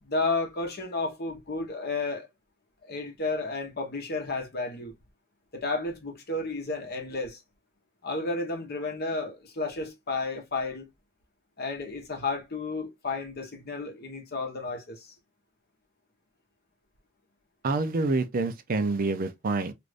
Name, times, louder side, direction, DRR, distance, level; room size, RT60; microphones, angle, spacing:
voice 1, 0.0-2.3 2.8-4.9 5.5-7.4 8.0-10.9 11.6-15.1, left 3 dB, 55° left, 0.9 m, -32 dB
voice 2, 17.6-19.7, right 3 dB, 45° right, 0.5 m, -27 dB
2.5 x 2.5 x 3.2 m
head